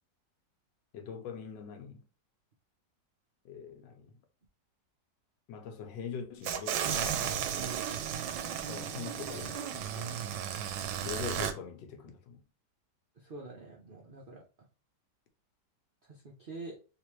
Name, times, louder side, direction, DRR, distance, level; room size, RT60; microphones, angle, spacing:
voice 1, 0.9-2.0 3.4-4.2 5.5-7.3 8.7-10.3 11.0-12.4, left 6 dB, 85° left, 1.4 m, -43 dB
sound 1, 6.4-11.5, right 9 dB, 90° right, 1.3 m, -34 dB
voice 2, 7.5-7.9 13.2-14.4 16.0-16.8, right 3 dB, 75° right, 0.5 m, -45 dB
3.4 x 3.0 x 3.0 m
omnidirectional pair, 1.9 m